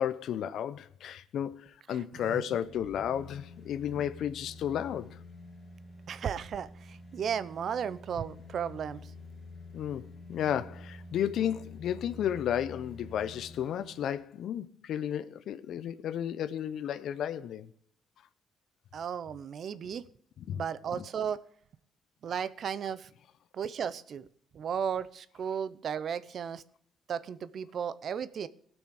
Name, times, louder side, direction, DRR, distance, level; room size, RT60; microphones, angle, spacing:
voice 1, 0.0-5.2 9.7-17.7 20.5-20.6 21.0-21.1, left 10 dB, 75° left, 0.6 m, -33 dB
voice 2, 1.9-2.4 3.9-4.1 6.1-9.1 18.9-20.0 20.5-21.4 22.2-23.1 23.5-24.3 24.5-26.6 27.1-28.5, right 7 dB, 60° right, 0.6 m, -35 dB
sound 1, 2.6-14.2 14.6-14.7, left 3 dB, 30° left, 2.7 m, -48 dB
17.5 x 6.2 x 4.8 m
cardioid pair, 90°, 0 cm